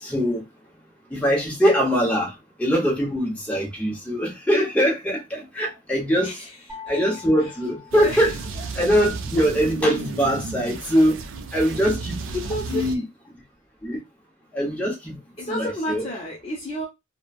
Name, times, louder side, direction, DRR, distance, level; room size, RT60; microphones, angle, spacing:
voice 1, 0.0-0.4 1.1-2.3 2.6-6.3 6.9-8.3 8.7-11.2 11.5-12.2 12.7-13.0 13.8-14.0 14.5-15.2 15.5-16.0, equal, 5° left, 0.8 m, -22 dB
voice 2, 6.2-6.6 6.9-7.0 7.4-7.6 8.0-8.4 12.3-12.9 15.4-16.9, equal, 25° left, 0.5 m, -31 dB
sound 1, 6.7-8.8, left 7 dB, 15° right, 1.4 m, -43 dB
sound 2, 7.9-13.0, right 4 dB, 60° right, 0.3 m, -33 dB
3.0 x 2.1 x 2.3 m
head